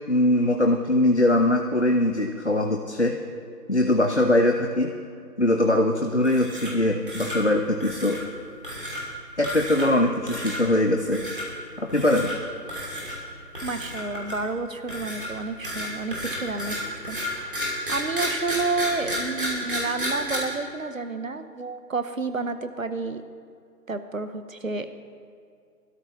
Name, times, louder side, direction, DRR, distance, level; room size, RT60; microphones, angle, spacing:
voice 1, 0.1-3.2 3.7-4.9 5.4-8.2 9.4-11.2 11.8-12.3, left 1 dB, 45° left, 3 dB, 0.6 m, -22 dB
sound 1, 6.2-6.8 7.1-7.4 7.8-8.2 8.6-9.0 9.4-10.0 10.3-10.6 11.1-11.4 11.9-12.4 12.7-13.2 13.5-14.5 14.9-20.4, equal, 30° right, 2.7 m, -31 dB
voice 2, 13.6-17.6 17.9-23.2 23.9-25.0, right 3 dB, 55° right, 10 dB, 0.9 m, -30 dB
21.5 x 13.0 x 3.1 m, 2.3 s
figure-of-eight pair, 175°, 49 cm